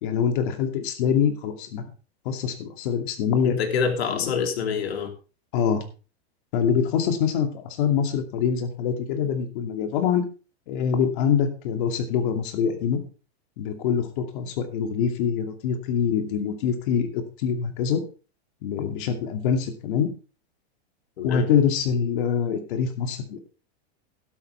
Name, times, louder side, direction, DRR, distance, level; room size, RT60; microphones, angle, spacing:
voice 1, 0.0-1.8 2.2-3.6 4.1-4.3 5.5-5.8 6.5-10.2 10.7-13.0 13.6-18.0 18.6-20.1 21.2-23.4, left 7 dB, 55° left, 6 dB, 2.6 m, -24 dB
voice 2, 3.4-5.1 21.2-21.5, left 6 dB, 85° left, 5 dB, 3.1 m, -26 dB
12.0 x 12.0 x 3.4 m, 0.34 s
supercardioid pair, 160°, 31 cm